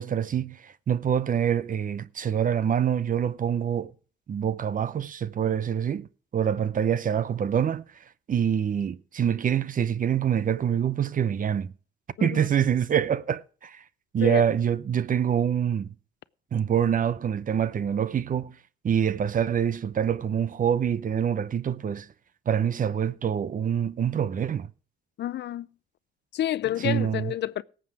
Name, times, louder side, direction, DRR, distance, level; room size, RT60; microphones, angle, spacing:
voice 1, 0.0-3.9 4.3-6.1 6.3-7.8 8.3-11.7 12.2-13.8 14.1-15.9 16.5-18.6 18.8-22.1 22.5-24.7 26.8-27.3, right 8 dB, 45° right, 0.7 m, -25 dB
voice 2, 25.2-25.7 26.3-27.6, left 12 dB, 60° left, 0.5 m, -29 dB
18.0 x 7.8 x 4.9 m
cardioid pair, 90°, 20 cm